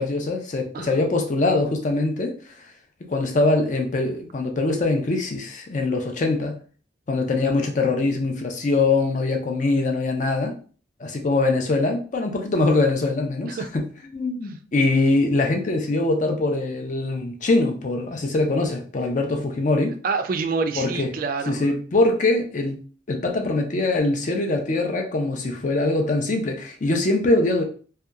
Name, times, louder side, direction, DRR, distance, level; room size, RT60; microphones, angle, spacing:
voice 1, 0.0-2.3 3.1-6.6 7.1-10.5 11.0-13.8 14.1-20.0 20.8-21.1 21.5-22.8 23.1-27.6, left 2 dB, 45° left, 3 dB, 0.5 m, -23 dB
voice 2, 20.0-21.7, right 4 dB, 50° right, 7 dB, 0.3 m, -27 dB
2.8 x 2.2 x 2.3 m, 0.40 s
head